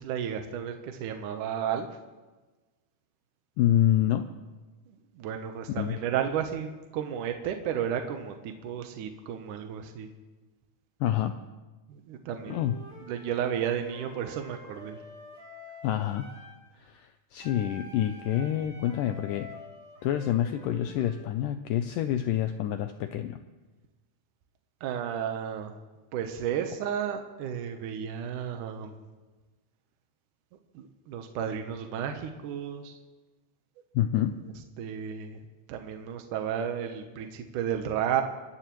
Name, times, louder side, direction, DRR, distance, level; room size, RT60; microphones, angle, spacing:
voice 1, 0.0-1.9 4.9-10.1 11.9-12.6 13.1-15.0 24.8-25.7 26.1-29.0 30.7-33.0 34.8-35.4 35.7-38.2, right 9 dB, 70° right, 5 dB, 2.1 m, -33 dB
voice 2, 3.6-4.2 5.7-6.0 11.0-11.3 12.5-12.7 15.8-16.3 16.8-19.5 20.0-23.4 33.9-34.3, left 11 dB, 85° left, 8 dB, 1.9 m, -27 dB
Wind instrument woodwind instrument, 12.4-16.6 17.4-21.3, left 1 dB, 25° right, 4.6 m, -48 dB
28.0 x 13.5 x 3.1 m, 1.2 s
omnidirectional pair, 4.5 m